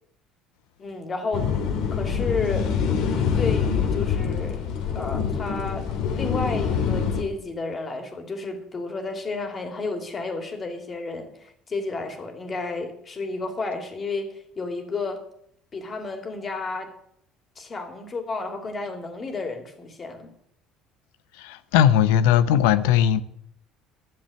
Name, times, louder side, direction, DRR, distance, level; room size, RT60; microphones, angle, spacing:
voice 1, 0.8-1.5 1.9-2.7 3.3-4.6 4.9-5.9 6.2-15.2 15.7-16.9 17.6-20.3, left 3 dB, 35° left, 2.9 m, -31 dB
sound 1, 1.3-7.2, left 6 dB, 70° left, 1.9 m, -25 dB
voice 2, 21.4-23.2, left 10 dB, 85° left, 0.7 m, -19 dB
12.0 x 7.3 x 7.9 m
supercardioid pair, 85°, 0 cm